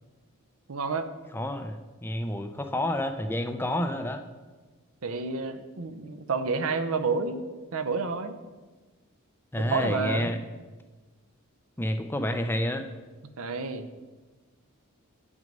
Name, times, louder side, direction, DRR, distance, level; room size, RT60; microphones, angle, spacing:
voice 1, 0.7-1.1 5.0-7.4 7.7-8.3 9.6-10.3 13.4-13.8, right 4 dB, 75° right, 10 dB, 0.7 m, -29 dB
voice 2, 1.3-4.2 9.5-10.4 11.8-12.8, left 1 dB, 10° left, 7 dB, 0.4 m, -29 dB
8.8 x 6.1 x 5.3 m, 1.3 s
head